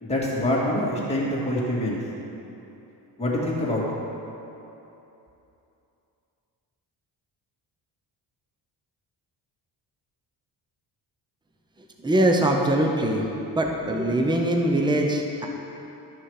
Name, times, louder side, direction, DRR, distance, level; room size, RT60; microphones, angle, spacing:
voice 1, 0.0-2.0 3.2-3.9, left 1 dB, 15° left, -6 dB, 2.4 m, -25 dB
voice 2, 12.0-13.2 13.5-15.5, right 1 dB, 10° right, 2 dB, 0.8 m, -22 dB
12.0 x 6.2 x 4.9 m, 2.9 s
cardioid pair, 125°, 42 cm